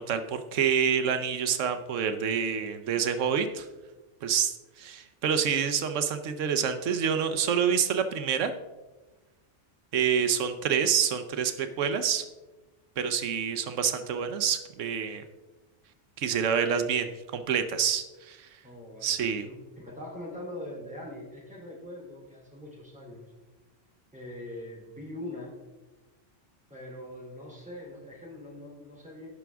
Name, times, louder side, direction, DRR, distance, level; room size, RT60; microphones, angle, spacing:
voice 1, 0.0-3.7 4.2-4.5 4.8-8.5 9.9-12.2 13.0-15.2 16.2-18.5 19.0-19.4, right 7 dB, 85° right, 8 dB, 1.1 m, -27 dB
voice 2, 18.6-23.3 24.1-25.5 26.7-29.3, left 1 dB, 5° right, -3 dB, 3.0 m, -42 dB
17.0 x 6.0 x 3.4 m, 1.2 s
omnidirectional pair, 1.3 m